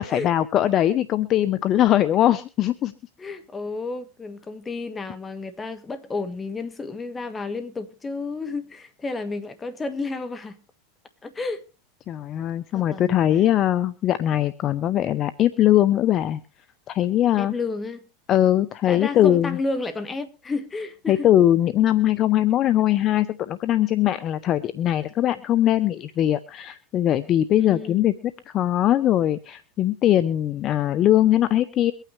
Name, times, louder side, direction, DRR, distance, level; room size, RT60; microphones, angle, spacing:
voice 1, 0.0-2.9 12.1-16.4 16.9-17.5 18.3-19.6 21.1-28.1 28.5-31.9, left 12 dB, 40° left, 0.7 m, -21 dB
voice 2, 3.2-10.6 11.2-11.6 12.7-13.2 17.4-18.0 18.9-21.3 27.6-28.1, left 3 dB, 20° left, 1.5 m, -31 dB
23.0 x 9.1 x 3.1 m
hypercardioid pair, 110°, 0 cm